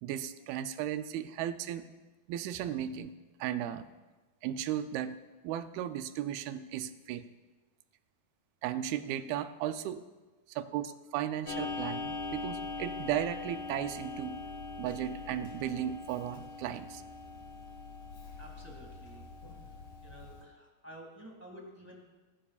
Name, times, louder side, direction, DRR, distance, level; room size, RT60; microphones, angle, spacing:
voice 1, 0.0-1.9 2.3-3.1 3.4-3.9 4.4-5.2 5.4-7.3 8.6-10.0 10.5-14.4 14.8-17.0, right 11 dB, 90° right, 10 dB, 2.5 m, -35 dB
Clock, 11.5-20.4, left 3 dB, 60° left, 3.3 m, -41 dB
voice 2, 18.4-19.2 20.0-22.1, equal, 10° right, -1 dB, 0.9 m, -51 dB
21.5 x 11.5 x 2.4 m, 1.2 s
omnidirectional pair, 4.3 m